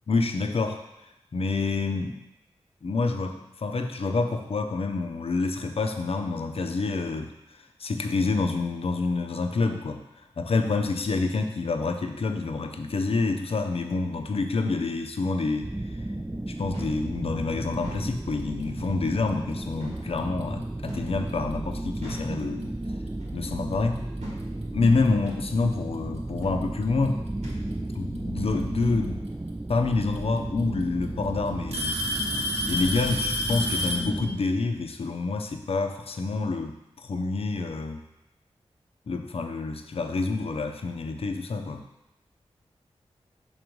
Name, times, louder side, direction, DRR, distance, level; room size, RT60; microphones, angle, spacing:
voice 1, 0.1-0.8 1.3-2.2 2.8-7.3 7.6-10.0 10.4-15.7 16.5-22.7 23.3-24.0 24.7-27.2 27.9-29.3 29.7-32.0 32.7-38.0 39.1-41.8, left 3 dB, 60° left, 6 dB, 0.6 m, -27 dB
sound 1, 15.6-34.4, right 1 dB, 10° right, 0.3 m, -34 dB
sound 2, 16.7-17.0 17.7-18.1 18.8-19.0 19.8-20.0 20.9-21.2 22.0-22.3 23.2-23.4 24.2-24.4 25.2-25.4 26.4-26.6 27.4-27.6 28.5-28.7, right 1 dB, 85° right, 1.7 m, -41 dB
Alarm / Tick-tock, 20.2-20.4 21.3-21.4 22.2-22.3 24.0-24.1 25.3-25.4 26.6-27.1 28.8-28.9 30.2-30.3 30.6-31.0 31.7-34.1, left 1 dB, 70° right, 1.1 m, -29 dB
6.0 x 3.8 x 4.6 m, 0.91 s
cardioid pair, 45°, 11 cm